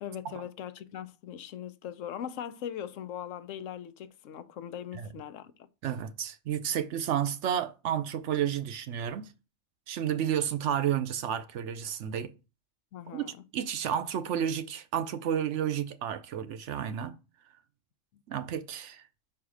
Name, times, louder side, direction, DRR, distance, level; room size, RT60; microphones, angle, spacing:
voice 1, 0.0-5.7 12.9-13.4 18.1-18.2, left 9 dB, 75° left, 1.0 m, -40 dB
voice 2, 5.8-9.3 9.9-12.3 13.1-17.1 18.3-19.0, right 9 dB, 70° right, 0.9 m, -31 dB
5.7 x 4.8 x 4.9 m
omnidirectional pair, 1.3 m